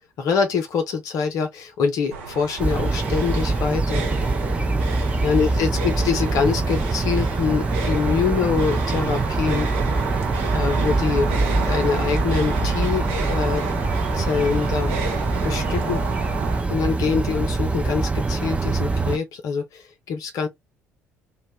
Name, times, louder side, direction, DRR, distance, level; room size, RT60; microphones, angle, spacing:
voice 1, 0.2-4.0 5.2-9.7 10.5-11.3 11.7-13.6 14.1-14.9 15.4-16.0 16.7-20.5, left 6 dB, 55° left, 0.5 m, -24 dB
sound 1, 2.1-16.6, right 4 dB, 70° right, 0.6 m, -31 dB
sound 2, 2.6-19.2, right 3 dB, 15° right, 0.5 m, -24 dB
2.1 x 2.1 x 3.4 m
figure-of-eight pair, 50°, 7 cm